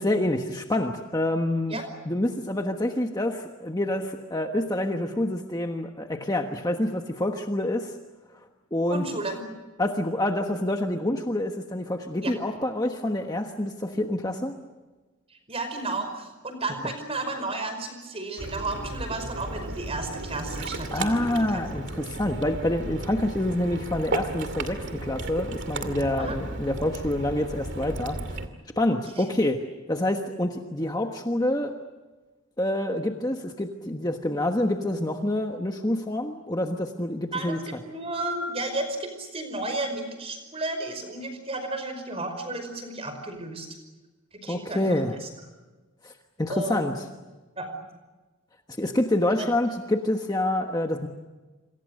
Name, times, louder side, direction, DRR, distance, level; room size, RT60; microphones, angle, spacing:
voice 1, 0.0-1.8 2.1-8.0 8.7-9.1 9.8-14.6 20.9-28.4 28.8-29.6 29.9-31.7 32.6-37.8 44.5-45.2 46.0-46.1 46.4-47.1 48.8-51.1, left 1 dB, 15° left, 4 dB, 1.3 m, -27 dB
voice 2, 8.9-9.4 12.2-12.3 15.3-21.6 26.2-26.4 29.1-29.3 37.3-37.6 37.8-43.7 44.3-45.3 46.5-47.0 47.6-47.7 49.4-49.5, right 2 dB, 25° right, 7 dB, 5.2 m, -33 dB
Ocean, 18.4-28.5, right 2 dB, 55° right, 2.4 m, -34 dB
28.0 x 26.5 x 6.6 m, 1.2 s
head